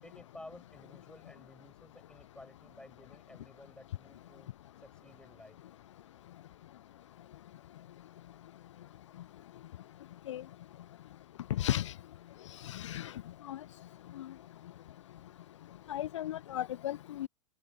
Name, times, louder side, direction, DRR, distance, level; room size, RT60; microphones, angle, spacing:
voice 1, 0.0-4.5 4.8-5.6, left 1 dB, 5° left, 7.7 m, -54 dB
voice 2, 11.6-11.9 12.6-13.1 13.5-13.6 14.2-14.3 15.9-17.3, left 12 dB, 65° left, 0.4 m, -35 dB
open air
figure-of-eight pair, 90°, 16 cm